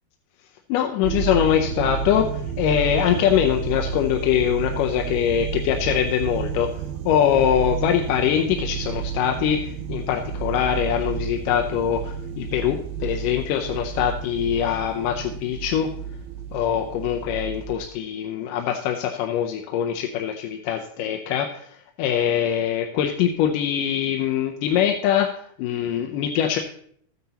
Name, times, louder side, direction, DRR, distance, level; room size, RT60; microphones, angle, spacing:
voice 1, 0.7-6.7 7.1-15.9 16.5-25.3 25.6-26.6, left 9 dB, 85° left, 3 dB, 2.3 m, -23 dB
sound 1, 1.0-17.8, right 6 dB, 75° right, 1.8 m, -31 dB
13.5 x 9.4 x 2.9 m, 0.64 s
omnidirectional pair, 3.7 m